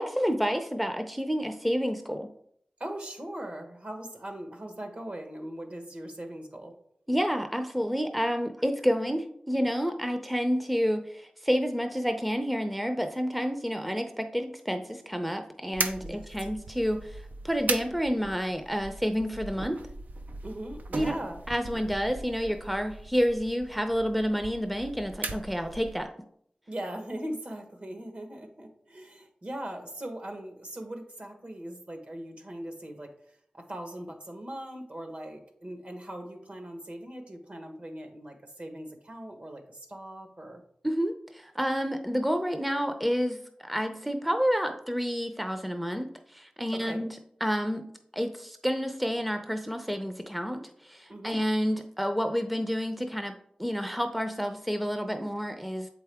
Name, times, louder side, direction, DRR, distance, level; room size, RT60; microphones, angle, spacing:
voice 1, 0.0-2.3 7.1-19.8 20.9-21.2 21.5-26.1 40.8-47.8 48.1-55.9, equal, ahead, 6 dB, 0.5 m, -29 dB
voice 2, 2.8-6.7 16.0-16.2 20.4-21.4 26.7-33.1 33.5-40.6 46.7-47.0 51.1-51.4, right 1 dB, 55° right, 4 dB, 1.3 m, -40 dB
sound 1, 15.7-26.1, right 3 dB, 80° right, 0.5 m, -39 dB
7.5 x 4.6 x 3.5 m, 0.68 s
wide cardioid pair, 65°, 3 cm